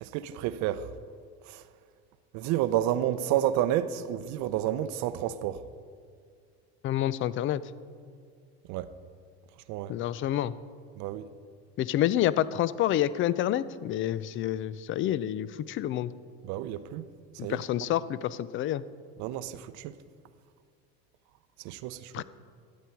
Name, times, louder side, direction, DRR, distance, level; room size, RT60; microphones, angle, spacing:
voice 1, 0.0-0.9 1.5-1.6 2.3-5.6 8.7-8.9 9.7-9.9 11.0-11.2 16.4-17.0 17.4-17.6 19.2-19.9 21.6-22.2, right 12 dB, 60° right, 0.6 m, -30 dB
voice 2, 6.8-7.6 9.9-10.5 11.8-16.1 17.4-18.8 22.1-22.2, left 12 dB, 40° left, 0.4 m, -28 dB
13.0 x 8.5 x 4.5 m
supercardioid pair, 100°, 32 cm